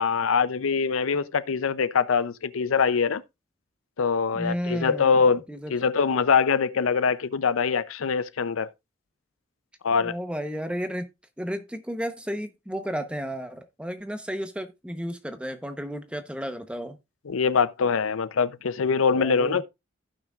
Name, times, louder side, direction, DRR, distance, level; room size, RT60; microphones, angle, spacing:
voice 1, 0.0-3.2 4.0-5.4 5.7-8.7 9.8-10.1 17.3-19.6, left 5 dB, 90° left, 0.6 m, -23 dB
voice 2, 4.3-5.1 5.5-5.7 10.0-11.1 11.4-17.0 19.1-19.6, equal, 5° right, 0.9 m, -33 dB
15.5 x 5.9 x 2.4 m
head